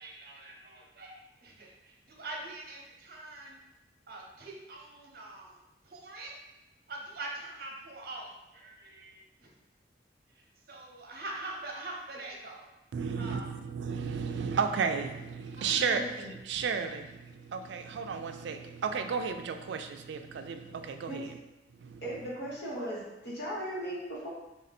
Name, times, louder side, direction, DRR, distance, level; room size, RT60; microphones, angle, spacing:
voice 1, 0.0-3.6 4.1-6.4 6.9-9.5 10.3-12.7 13.2-13.5, right 2 dB, 55° right, -1 dB, 0.8 m, -44 dB
voice 2, 12.9-16.1 16.4-21.3 21.8-22.0, right 5 dB, 75° right, 7 dB, 0.3 m, -33 dB
voice 3, 15.6-16.3 21.1-21.2 22.0-24.3, equal, 65° left, -5 dB, 1.2 m, -38 dB
3.4 x 2.6 x 4.1 m, 0.97 s
head